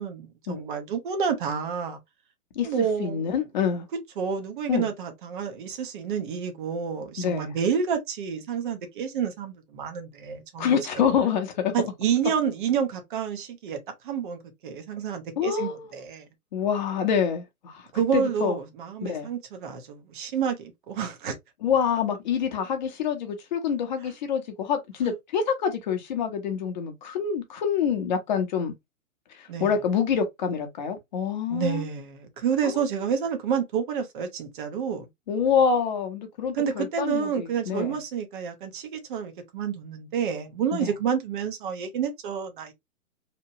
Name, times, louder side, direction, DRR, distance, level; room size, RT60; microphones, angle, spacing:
voice 1, 0.0-2.0 2.6-3.4 4.2-10.8 11.7-13.8 14.0-16.3 17.9-21.3 25.0-25.1 29.5-29.8 31.5-35.0 36.5-42.7, right 7 dB, 35° right, 0.7 m, -29 dB
voice 2, 3.0-3.9 4.7-4.9 7.2-7.5 10.6-11.7 15.4-15.9 16.5-17.7 18.1-18.6 19.0-19.3 21.6-28.7 29.6-31.8 32.6-32.8 35.3-38.0 40.7-40.9, left 7 dB, 30° left, 0.7 m, -26 dB
2.9 x 2.1 x 2.6 m
hypercardioid pair, 150°, 43 cm